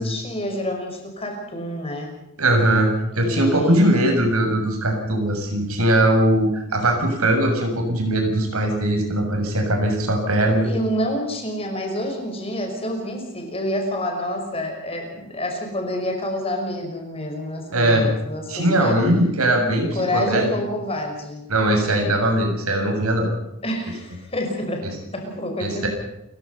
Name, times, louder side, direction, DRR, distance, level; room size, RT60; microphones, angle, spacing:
voice 1, 0.0-2.1 3.1-4.1 10.6-19.0 19.9-21.5 23.6-25.9, left 1 dB, 25° left, 3 dB, 5.6 m, -28 dB
voice 2, 2.4-2.9 3.2-10.7 17.7-18.1 18.5-19.9 20.1-20.5 21.5-23.3 25.6-25.9, right 1 dB, 85° right, 3 dB, 7.3 m, -20 dB
29.5 x 16.5 x 5.7 m, 0.82 s
head